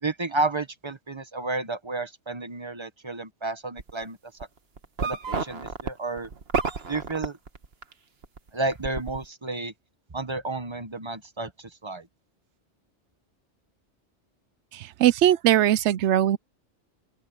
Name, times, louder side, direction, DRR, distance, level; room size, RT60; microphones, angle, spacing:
voice 1, 0.0-4.3 5.0-6.3 6.9-7.4 8.5-9.7 10.1-12.1, right 2 dB, 25° right, 1.2 m, -31 dB
sound 1, 3.8-4.0 4.4-7.9 8.2-9.2, right 5 dB, 60° right, 1.7 m, -30 dB
voice 2, 14.7-16.4, right 12 dB, 80° right, 0.9 m, -20 dB
open air
omnidirectional pair, 1.2 m